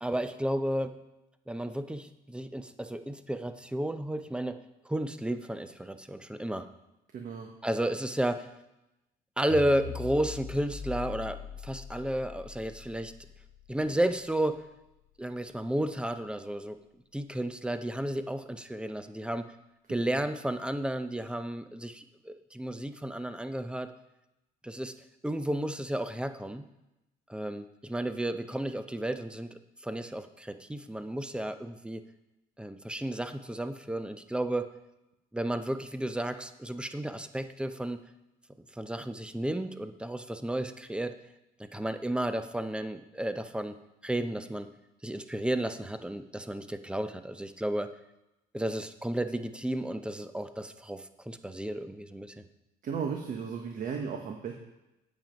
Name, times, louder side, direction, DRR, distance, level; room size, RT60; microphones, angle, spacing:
voice 1, 0.0-0.9 1.5-6.7 7.6-8.5 9.4-13.1 13.7-14.6 15.2-16.8 17.1-19.5 19.9-23.9 24.6-24.9 25.2-26.6 27.3-29.5 29.8-32.0 32.6-34.7 35.3-38.0 38.7-41.1 41.6-43.8 44.0-44.7 45.0-47.9 48.5-52.4, right 1 dB, 5° right, 10 dB, 0.6 m, -33 dB
voice 2, 7.1-7.5 19.9-20.2 52.8-54.5, right 6 dB, 50° right, 3 dB, 1.2 m, -35 dB
sound 1, 9.5-15.8, left 7 dB, 65° left, 1.4 m, -43 dB
8.7 x 7.5 x 5.2 m, 0.94 s
cardioid pair, 110°, 17 cm